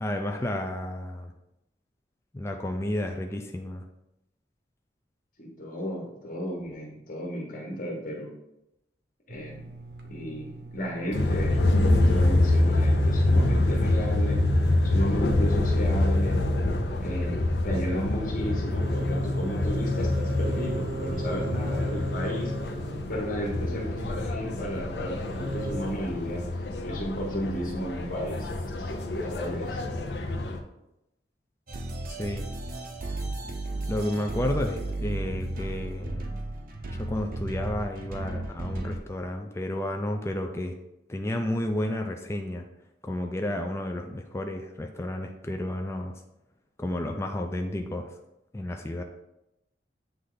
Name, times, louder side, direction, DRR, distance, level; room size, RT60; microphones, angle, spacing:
voice 1, 0.0-1.3 2.3-3.8 32.1-32.5 33.9-36.3 36.9-40.8 41.1-42.6 43.0-46.1 46.8-48.1 48.5-49.0, left 1 dB, 15° left, 3 dB, 0.4 m, -31 dB
voice 2, 5.4-8.3 9.3-9.7 10.1-14.4 14.8-16.4 17.0-22.5 23.1-28.5 28.8-29.8, equal, 50° left, -3 dB, 1.3 m, -34 dB
sound 1, 9.3-25.8, equal, 75° right, 1.0 m, -36 dB
sound 2, 11.1-30.6, left 2 dB, 70° left, 0.7 m, -26 dB
sound 3, 31.7-39.0, right 2 dB, 55° right, 0.7 m, -34 dB
7.9 x 3.3 x 3.9 m, 0.88 s
head